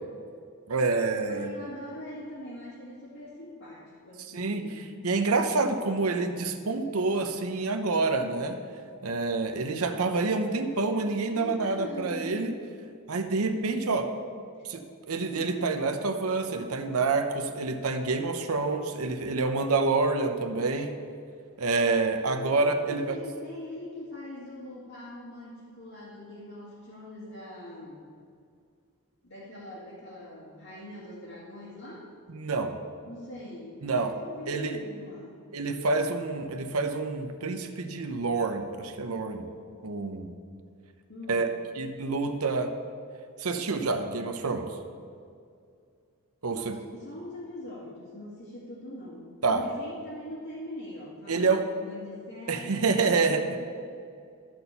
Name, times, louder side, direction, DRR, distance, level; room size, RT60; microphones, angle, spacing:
voice 1, 0.7-1.5 4.3-8.6 9.0-12.5 13.1-14.1 14.6-14.8 15.1-20.9 21.6-23.0 32.3-32.8 33.8-34.1 34.5-34.8 35.5-39.5 39.8-40.3 41.3-41.5 41.8-42.7 43.4-44.7 46.4-46.7 49.4-49.6 51.3-51.6 52.5-53.4, right 3 dB, 75° right, 6 dB, 0.9 m, -27 dB
voice 2, 1.3-4.9 11.3-12.5 22.4-22.5 22.8-28.1 29.2-32.1 33.1-35.3 41.1-41.5 46.5-53.6, left 1 dB, 65° left, -8 dB, 2.1 m, -42 dB
13.0 x 4.4 x 6.9 m, 2.3 s
head